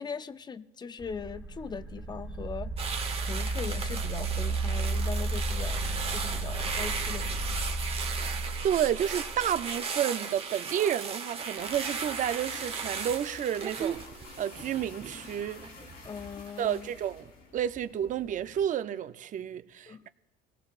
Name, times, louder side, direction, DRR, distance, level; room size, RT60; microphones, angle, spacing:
voice 1, 0.0-2.7 3.2-5.8 6.1-7.4 16.0-16.9 19.9-20.1, left 5 dB, 25° left, 0.5 m, -40 dB
sound 1, 1.0-9.8, right 2 dB, 5° right, 1.1 m, -33 dB
sound 2, 2.8-16.1 16.5-16.8, right 5 dB, 35° right, 1.0 m, -36 dB
voice 2, 8.6-14.0 14.4-15.6 16.6-20.1, right 10 dB, 50° right, 0.5 m, -31 dB
sound 3, 11.6-18.7, left 4 dB, 90° left, 3.9 m, -49 dB
25.0 x 17.5 x 2.5 m
cardioid pair, 110°, 17 cm